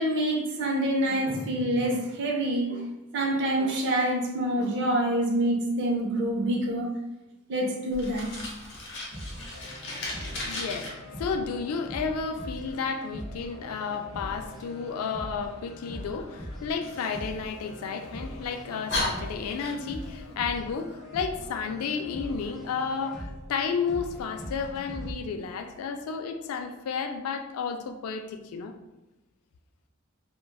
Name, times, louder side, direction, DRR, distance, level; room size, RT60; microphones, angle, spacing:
voice 1, 0.0-2.8 3.1-6.9 7.5-8.3, right 1 dB, 55° right, 0 dB, 0.6 m, -26 dB
Fire, 7.9-10.9 16.8-18.0 18.5-18.6 18.9-20.1, left 2 dB, 55° left, 0.8 m, -35 dB
sound 1, 9.1-25.1, equal, ahead, 1.0 m, -42 dB
voice 2, 10.0-28.7, left 5 dB, 80° left, 6 dB, 0.3 m, -32 dB
3.4 x 2.2 x 2.2 m, 0.98 s
head